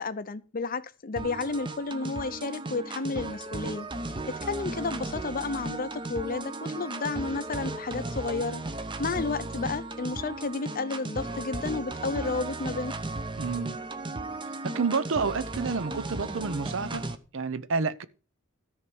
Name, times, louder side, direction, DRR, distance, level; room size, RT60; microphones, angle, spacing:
voice 1, 0.0-3.9 4.3-8.6 9.0-12.9, left 3 dB, 40° left, 0.6 m, -32 dB
sound 1, 1.2-17.2, right 2 dB, 20° right, 0.8 m, -36 dB
voice 2, 13.4-13.8 14.6-17.0 17.3-18.0, right 4 dB, 60° right, 0.7 m, -29 dB
13.5 x 4.7 x 7.1 m
head